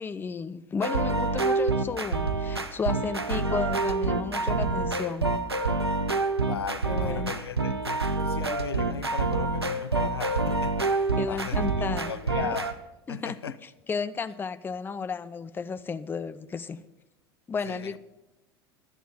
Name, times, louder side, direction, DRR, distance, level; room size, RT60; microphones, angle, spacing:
voice 1, 0.0-5.3 6.9-7.3 11.2-12.1 13.1-16.8 17.5-18.0, left 5 dB, 15° left, 0.5 m, -33 dB
sound 1, 0.8-12.7, right 3 dB, 90° right, 0.7 m, -27 dB
voice 2, 6.4-12.8 13.1-13.6 17.7-18.0, left 7 dB, 80° left, 0.4 m, -37 dB
11.0 x 8.0 x 7.2 m
figure-of-eight pair, 75°, 13 cm